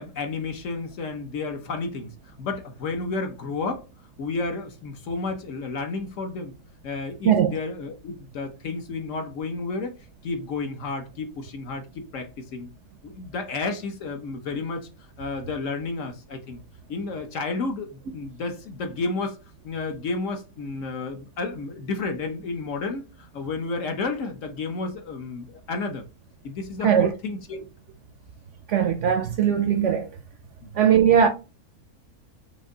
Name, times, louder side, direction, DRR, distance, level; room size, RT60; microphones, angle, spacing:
voice 1, 0.0-3.8 4.2-6.5 6.8-10.0 10.2-12.7 13.0-14.9 15.2-16.6 16.9-19.4 19.6-26.0 26.4-27.7 30.6-30.7, left 3 dB, 60° left, 1.1 m, -31 dB
voice 2, 28.7-30.1 30.8-31.3, right 8 dB, 65° right, 0.8 m, -19 dB
5.4 x 2.6 x 3.7 m
omnidirectional pair, 1.6 m